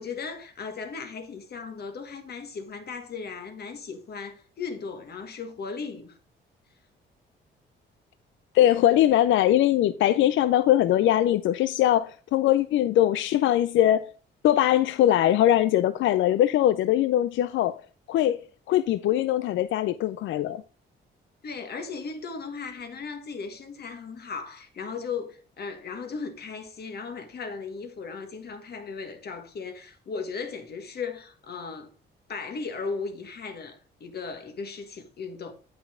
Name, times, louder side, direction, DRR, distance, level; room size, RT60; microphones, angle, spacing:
voice 1, 0.0-6.2 21.4-31.9 32.3-35.5, left 5 dB, 55° left, 1.6 m, -36 dB
voice 2, 8.5-14.1 14.4-17.8 18.1-18.4 18.7-20.6, left 12 dB, 75° left, 0.4 m, -21 dB
8.7 x 5.7 x 3.7 m
cardioid pair, 90°, 20 cm